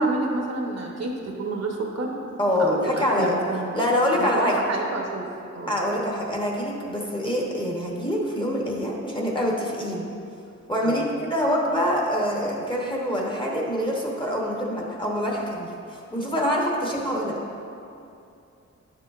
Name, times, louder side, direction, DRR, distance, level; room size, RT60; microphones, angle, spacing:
voice 1, 0.0-2.2 2.6-3.7 4.2-5.3 5.5-5.8 10.8-11.0, right 2 dB, 60° right, 0 dB, 1.0 m, -28 dB
voice 2, 2.4-3.4 3.7-4.6 5.7-10.1 10.7-11.0 11.3-17.4, equal, 15° left, -2 dB, 1.0 m, -25 dB
9.7 x 6.6 x 2.4 m, 2.6 s
wide cardioid pair, 95°, 29 cm